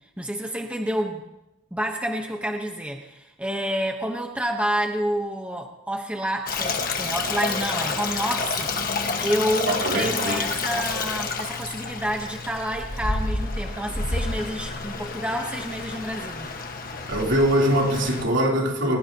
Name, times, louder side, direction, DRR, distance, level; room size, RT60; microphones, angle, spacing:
voice 1, 0.2-1.2 1.7-16.5, equal, 5° right, 1.0 m, -29 dB
Stream, 6.5-18.2, left 4 dB, 45° left, 1.5 m, -29 dB
voice 2, 9.7-10.4 17.1-19.0, equal, 65° right, 3.4 m, -22 dB
21.5 x 20.5 x 2.9 m
head